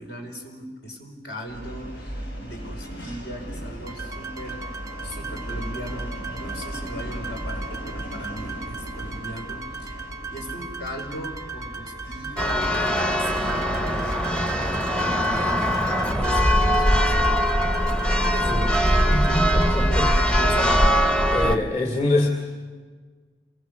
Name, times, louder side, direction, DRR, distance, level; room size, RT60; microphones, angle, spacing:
voice 1, 0.0-10.0 10.3-17.3 18.3-18.5 18.8-21.0 21.4-21.6, equal, 65° left, 2 dB, 5.0 m, -38 dB
sound 1, 1.5-20.9, right 1 dB, 85° left, 6.8 m, -38 dB
sound 2, 3.9-19.7, right 4 dB, 20° right, 0.6 m, -38 dB
Church bell, 12.4-21.6, equal, 5° left, 0.9 m, -21 dB
voice 2, 18.4-20.1 21.3-22.3, left 2 dB, 40° left, 2 dB, 2.6 m, -25 dB
28.5 x 22.5 x 7.0 m, 1.5 s
head